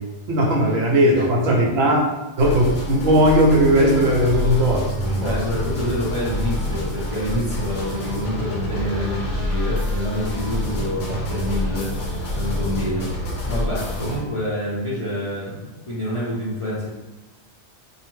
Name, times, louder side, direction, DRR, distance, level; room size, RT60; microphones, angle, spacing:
voice 1, 0.3-2.0 2.4-5.4, equal, 75° right, -1 dB, 1.0 m, -18 dB
voice 2, 1.1-1.6 3.8-3.9 5.2-13.1 13.4-16.9, equal, 45° left, -9 dB, 0.4 m, -27 dB
sound 1, 2.4-14.2, left 1 dB, 75° left, 1.0 m, -27 dB
2.7 x 2.1 x 3.1 m, 1.1 s
omnidirectional pair, 1.4 m